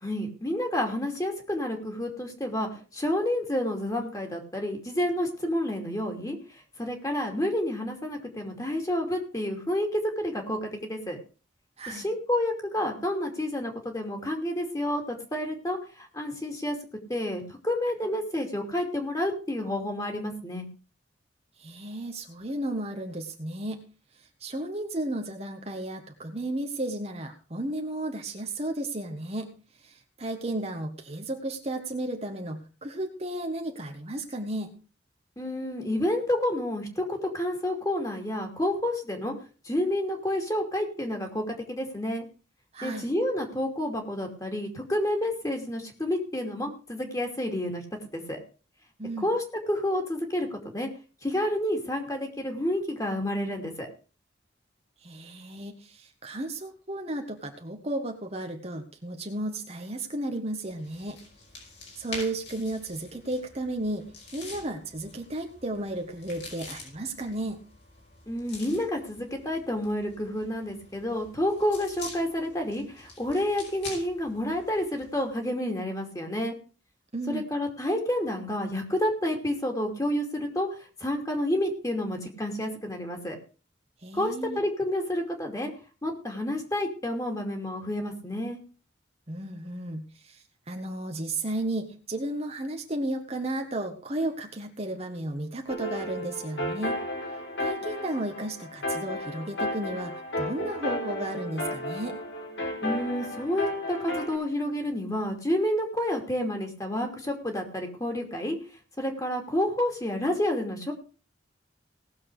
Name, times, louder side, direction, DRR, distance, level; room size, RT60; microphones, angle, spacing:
voice 1, 0.0-6.4 6.8-11.2 11.9-16.8 17.1-20.7 35.4-39.3 39.6-42.2 42.8-47.8 48.1-48.4 49.2-50.9 51.2-53.9 68.3-76.6 77.3-80.7 81.0-83.4 84.1-85.7 86.0-88.6 102.8-108.6 109.0-110.9, left 1 dB, 20° left, 3 dB, 2.7 m, -29 dB
voice 2, 21.6-23.9 24.4-29.5 29.8-34.8 42.7-43.1 49.0-49.3 55.0-61.2 62.0-67.6 77.1-77.5 84.0-84.6 89.3-97.0 97.6-102.2, right 1 dB, 35° right, 4 dB, 1.5 m, -34 dB
sound 1, 60.7-75.4, left 3 dB, 65° left, 5.3 m, -46 dB
sound 2, 95.7-104.4, left 1 dB, 90° left, 4.4 m, -33 dB
18.5 x 7.2 x 4.9 m, 0.36 s
head